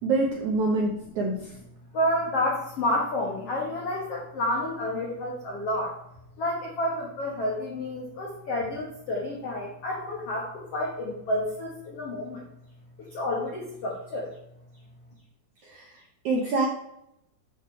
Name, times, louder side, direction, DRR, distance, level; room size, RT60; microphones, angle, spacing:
voice 1, 0.0-1.5 15.6-15.9 16.2-16.7, right 3 dB, 75° right, -1 dB, 1.7 m, -26 dB
voice 2, 1.9-6.0 6.4-12.4 13.0-14.3, left 1 dB, 70° left, -2 dB, 1.4 m, -30 dB
8.1 x 6.8 x 4.4 m, 0.82 s
omnidirectional pair, 4.9 m